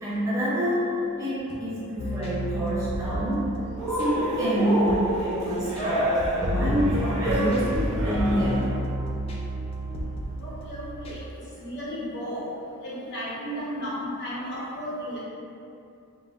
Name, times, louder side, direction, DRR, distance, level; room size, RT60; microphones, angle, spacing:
voice 1, 0.0-0.9 1.2-3.5 4.0-8.7, equal, 15° right, -10 dB, 1.0 m, -27 dB
sound 1, 2.0-11.2, equal, 25° left, 0.3 m, -31 dB
Cheering, 3.8-8.7, right 1 dB, 75° right, 0.7 m, -28 dB
voice 2, 10.4-11.2 11.6-12.5 12.8-15.2, equal, 50° left, -7 dB, 0.9 m, -34 dB
4.4 x 2.1 x 3.6 m, 2.6 s
head